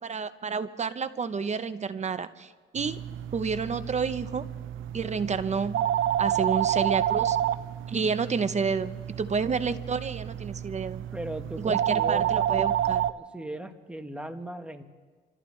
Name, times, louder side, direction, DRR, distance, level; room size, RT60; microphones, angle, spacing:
voice 1, 0.0-3.0 3.3-4.4 4.9-5.8 6.2-7.4 7.9-11.0 11.6-13.0, right 5 dB, 35° right, 12 dB, 0.8 m, -30 dB
sound 1, 2.8-13.1, right 11 dB, 80° right, 0.6 m, -29 dB
voice 2, 11.1-12.6 13.1-14.8, right 1 dB, 5° right, 6 dB, 1.3 m, -38 dB
27.5 x 14.5 x 3.2 m, 1.5 s
cardioid pair, 90°, 20 cm